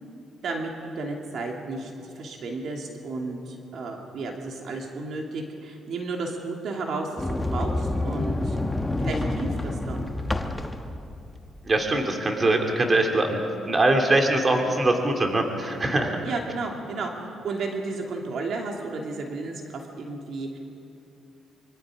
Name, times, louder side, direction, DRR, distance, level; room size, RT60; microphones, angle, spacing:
voice 1, 0.4-8.6 9.0-10.1 16.2-20.6, right 3 dB, 65° right, 1 dB, 2.8 m, -33 dB
Sliding door, 7.2-12.0, left 2 dB, 10° left, 1.2 m, -28 dB
voice 2, 11.6-13.4 13.7-16.2, right 2 dB, 30° right, 2 dB, 2.7 m, -22 dB
25.0 x 24.5 x 5.1 m, 2.6 s
cardioid pair, 90°, 0 cm